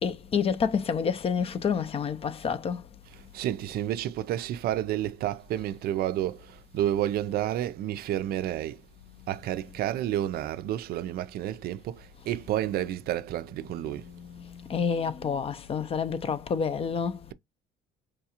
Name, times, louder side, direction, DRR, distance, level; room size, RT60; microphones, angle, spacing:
voice 1, 0.0-2.8 14.2-17.2, left 6 dB, 35° left, 0.4 m, -28 dB
voice 2, 3.1-8.8 9.3-14.0, right 12 dB, 65° right, 0.4 m, -30 dB
4.7 x 2.4 x 2.8 m
cardioid pair, 110°, 17 cm